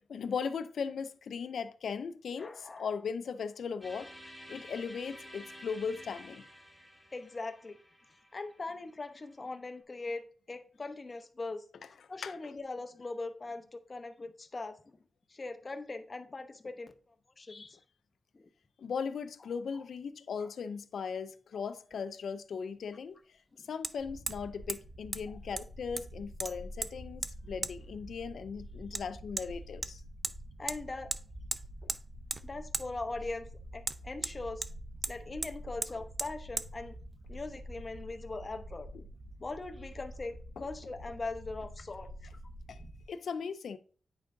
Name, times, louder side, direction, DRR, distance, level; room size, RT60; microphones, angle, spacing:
voice 1, 0.0-4.1 4.5-6.4 12.2-12.5 18.8-23.2 23.7-30.0 31.8-31.9 40.6-40.7 42.7-42.8 43.1-43.8, left 6 dB, 85° left, 0.4 m, -38 dB
voice 2, 2.4-2.9 7.1-7.8 8.3-11.6 12.1-15.0 15.3-16.9 17.4-17.8 18.3-18.5 19.7-19.8 20.4-20.5 21.5-21.7 25.3-25.4 30.6-31.1 32.4-34.7 35.1-37.0 37.3-38.9 39.4-42.1 42.8-42.9, left 3 dB, 40° left, 0.7 m, -41 dB
sound 1, 3.8-9.7, equal, 5° left, 1.9 m, -52 dB
Hammer, 21.9-22.0 23.8-23.9 24.3-24.4 24.7-24.8 25.1-25.2 25.6-26.1 26.4-26.9 27.2-27.3 27.6-27.7 28.9-29.0 29.4-29.5 29.8-30.4 30.7-30.8 31.1-31.2 31.5-32.0 32.3-32.4 32.7-32.9 33.8-34.7 35.0-35.2 35.4-35.5 35.8-35.9 36.2-36.3 36.6-36.7, right 2 dB, 30° right, 0.4 m, -36 dB
sound 2, 24.0-43.1, equal, 60° right, 2.0 m, -47 dB
9.0 x 4.6 x 2.6 m
cardioid pair, 65°, 0 cm